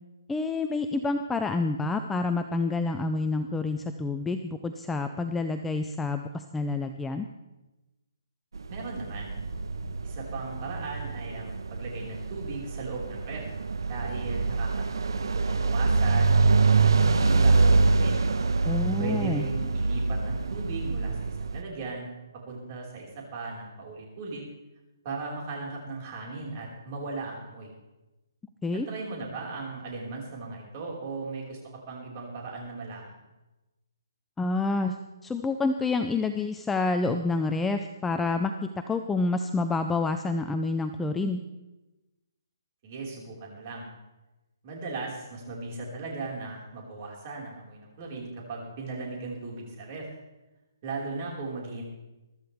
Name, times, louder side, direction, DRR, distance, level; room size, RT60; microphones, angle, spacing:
voice 1, 0.3-7.3 18.6-19.4 28.6-28.9 34.4-35.0 35.2-41.4, left 3 dB, 5° left, 6 dB, 0.4 m, -28 dB
sound 1, 8.5-21.6, right 4 dB, 80° right, 1.1 m, -25 dB
voice 2, 8.7-9.4 10.0-13.6 13.9-18.2 19.0-22.1 22.5-24.4 25.0-27.7 28.7-31.6 31.9-33.1 42.8-43.9 44.6-50.1 50.8-51.8, right 3 dB, 30° right, -3 dB, 4.9 m, -37 dB
22.5 x 13.0 x 3.5 m, 1.0 s
hypercardioid pair, 165°, 2 cm